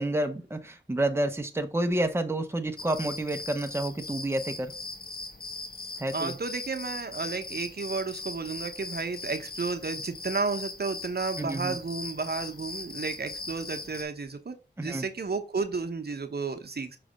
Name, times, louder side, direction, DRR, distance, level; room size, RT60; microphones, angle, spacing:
voice 1, 0.0-4.7 6.0-6.4 11.4-11.8 14.8-15.0, right 1 dB, 15° right, 6 dB, 0.8 m, -29 dB
sound 1, 2.8-14.0, left 3 dB, 50° left, 1.2 m, -40 dB
voice 2, 6.1-17.0, right 4 dB, 55° right, 7 dB, 0.8 m, -32 dB
6.1 x 3.3 x 5.1 m, 0.31 s
wide cardioid pair, 60°, 19 cm